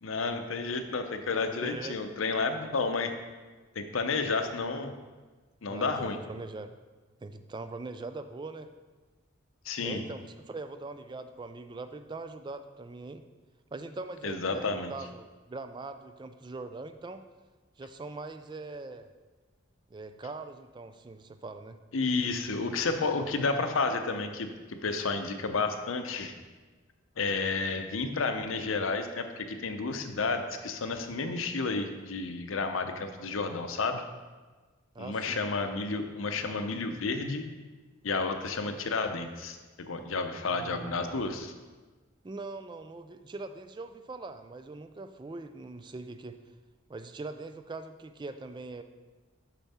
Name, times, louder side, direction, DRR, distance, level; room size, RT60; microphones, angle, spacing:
voice 1, 0.0-3.1 3.7-4.9 5.6-6.2 9.6-10.0 14.2-14.9 21.9-26.3 27.2-34.0 35.0-37.4 38.0-41.5, left 4 dB, 85° left, 7 dB, 0.7 m, -31 dB
voice 2, 1.6-2.2 5.7-6.7 7.2-8.7 9.8-13.2 13.7-17.2 17.8-19.1 19.9-21.8 34.9-35.4 40.5-41.0 42.2-46.4 46.9-48.8, right 3 dB, 25° right, 9 dB, 0.3 m, -42 dB
6.9 x 5.8 x 4.2 m, 1.3 s
head